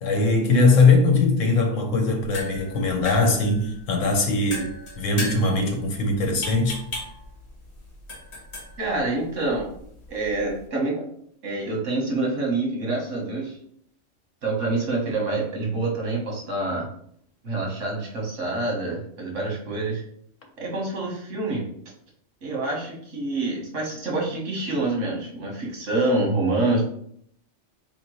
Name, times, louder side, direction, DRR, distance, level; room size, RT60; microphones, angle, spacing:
voice 1, 0.0-6.8, left 3 dB, 90° left, 1.3 m, -21 dB
sound 1, 2.1-10.7, left 1 dB, 60° left, 1.7 m, -38 dB
voice 2, 8.8-9.7 10.1-11.0 11.4-13.6 14.4-16.9 17.4-20.0 20.6-21.7 22.4-26.8, right 2 dB, 80° right, 1.7 m, -26 dB
4.1 x 3.6 x 3.1 m
omnidirectional pair, 1.3 m